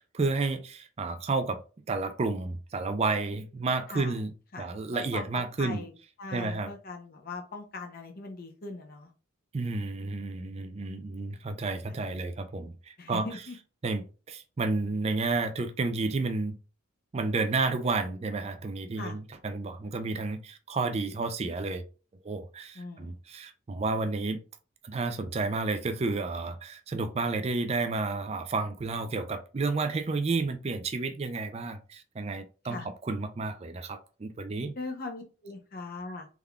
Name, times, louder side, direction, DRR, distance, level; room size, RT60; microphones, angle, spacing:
voice 1, 0.1-1.6 1.9-5.8 6.3-6.7 9.5-13.3 13.8-16.5 17.1-21.8 22.2-24.4 24.8-34.8, right 3 dB, 30° right, 0.4 m, -31 dB
voice 2, 4.5-5.9 6.2-9.1 11.8-12.0 13.0-13.6 19.0-19.2 22.7-23.2 32.7-32.9 34.8-36.3, left 3 dB, 45° left, 0.6 m, -40 dB
3.6 x 3.4 x 2.2 m
head